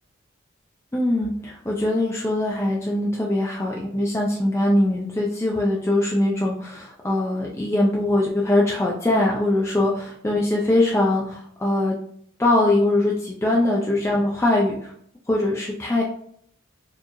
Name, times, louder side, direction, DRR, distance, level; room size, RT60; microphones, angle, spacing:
voice 1, 0.9-12.0 12.4-14.9 15.3-16.0, left 1 dB, 15° left, -3 dB, 0.4 m, -22 dB
4.4 x 3.0 x 2.6 m, 0.66 s
head